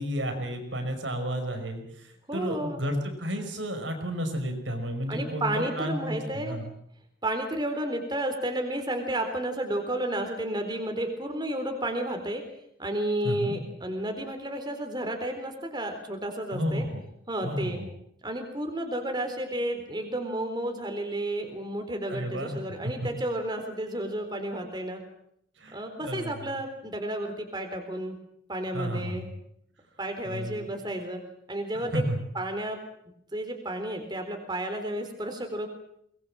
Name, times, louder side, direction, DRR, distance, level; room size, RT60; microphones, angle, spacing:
voice 1, 0.0-6.7 13.2-13.6 16.5-17.0 17.4-17.9 22.1-22.9 25.6-26.5 28.7-29.3 30.2-30.7 31.7-32.2, equal, 80° right, 6 dB, 5.3 m, -32 dB
voice 2, 2.3-2.8 5.1-6.6 7.2-12.4 12.8-16.8 17.3-17.8 18.2-25.0 25.7-28.2 28.5-29.3 30.0-31.2 31.5-32.0 32.4-32.8 33.3-35.7, right 1 dB, 25° right, 5 dB, 4.0 m, -32 dB
23.0 x 21.5 x 7.7 m, 0.72 s
head